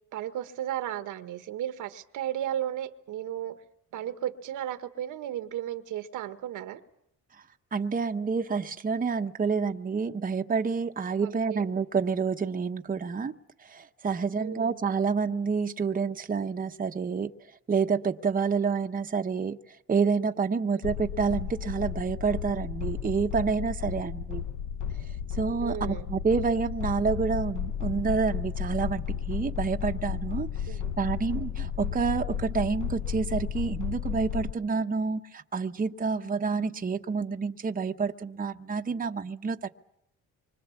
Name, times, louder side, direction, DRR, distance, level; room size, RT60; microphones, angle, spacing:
voice 1, 0.1-3.5 3.9-6.8 11.2-11.6 14.4-14.7 20.7-20.9 25.6-26.1 30.7-30.9, right 11 dB, 85° right, 9 dB, 1.4 m, -34 dB
voice 2, 7.7-13.3 13.6-17.3 17.7-19.6 19.9-24.4 25.4-30.5 31.0-39.7, right 5 dB, 30° right, 6 dB, 1.0 m, -28 dB
sound 1, 20.8-34.5, left 8 dB, 80° left, 1.0 m, -33 dB
25.5 x 25.0 x 7.1 m, 0.78 s
cardioid pair, 90°, 30 cm